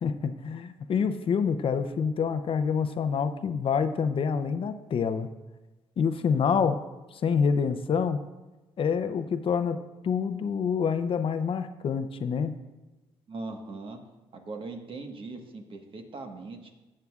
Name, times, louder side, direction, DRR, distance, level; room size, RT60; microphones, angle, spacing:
voice 1, 0.0-5.3 6.0-6.8 7.1-8.2 8.8-9.8 10.0-12.5, left 6 dB, 55° left, 9 dB, 0.6 m, -27 dB
voice 2, 13.3-14.0 14.3-16.7, right 3 dB, 50° right, 4 dB, 1.4 m, -40 dB
14.5 x 7.7 x 2.4 m, 1.1 s
cardioid pair, 75°, 11 cm